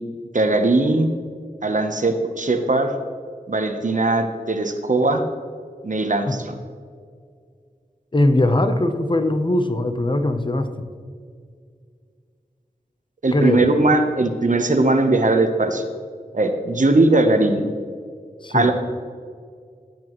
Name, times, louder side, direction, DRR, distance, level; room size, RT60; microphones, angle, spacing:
voice 1, 0.3-1.1 1.6-2.9 3.5-5.2 5.8-6.5 13.2-15.8 16.3-17.7 18.5-18.7, right 2 dB, 55° right, 6 dB, 1.0 m, -19 dB
voice 2, 8.1-10.7 13.3-13.6 18.4-18.7, left 1 dB, 30° left, 8 dB, 0.9 m, -20 dB
16.5 x 8.5 x 3.1 m, 2.1 s
wide cardioid pair, 60°, 16 cm